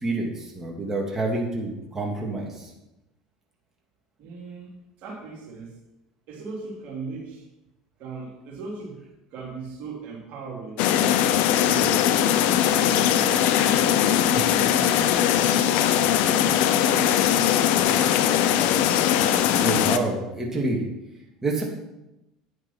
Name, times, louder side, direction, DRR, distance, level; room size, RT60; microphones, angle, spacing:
voice 1, 0.0-2.7 19.6-20.8 21.4-21.6, right 2 dB, 20° right, -1 dB, 2.9 m, -28 dB
voice 2, 4.2-5.8 6.3-7.5 8.0-9.0 9.3-11.2 11.6-12.1 12.6-17.5, right 4 dB, 55° right, -1 dB, 3.1 m, -38 dB
sound 1, 10.8-20.0, left 10 dB, 60° left, 0.7 m, -20 dB
9.6 x 7.9 x 5.9 m, 0.93 s
hypercardioid pair, 70°, 3 cm